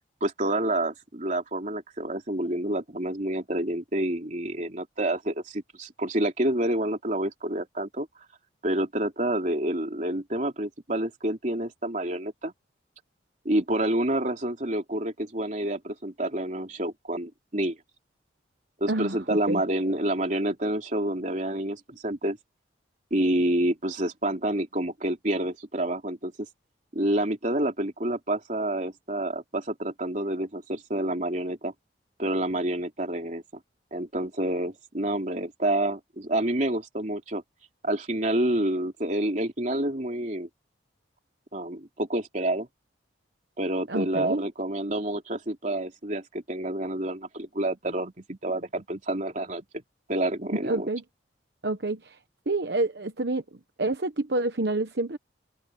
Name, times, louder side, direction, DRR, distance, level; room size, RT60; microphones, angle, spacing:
voice 1, 0.2-8.1 8.6-12.5 13.4-17.8 18.8-22.4 23.1-26.3 26.9-31.7 32.2-33.4 33.9-37.4 37.8-40.5 41.5-42.7 43.6-49.8 50.1-50.9, right 1 dB, 40° right, 3.3 m, -28 dB
voice 2, 18.9-19.6 43.9-44.5 50.5-51.0 51.6-52.2 52.5-55.2, right 2 dB, 60° right, 1.1 m, -28 dB
head